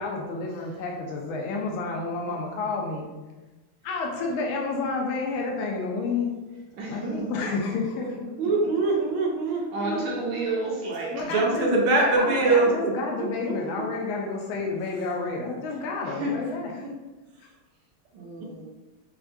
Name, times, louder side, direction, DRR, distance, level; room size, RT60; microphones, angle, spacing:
voice 1, 0.0-3.1 3.8-6.3 6.9-8.1 9.8-10.1 11.1-16.9, left 3 dB, 75° left, 0 dB, 1.4 m, -30 dB
voice 2, 6.8-7.1 9.7-11.2 16.2-16.4 18.1-18.6, right 2 dB, 65° right, -4 dB, 1.4 m, -30 dB
voice 3, 8.4-10.5 11.3-12.7, right 3 dB, 90° right, -1 dB, 1.6 m, -23 dB
5.7 x 2.2 x 2.6 m, 1.1 s
omnidirectional pair, 2.3 m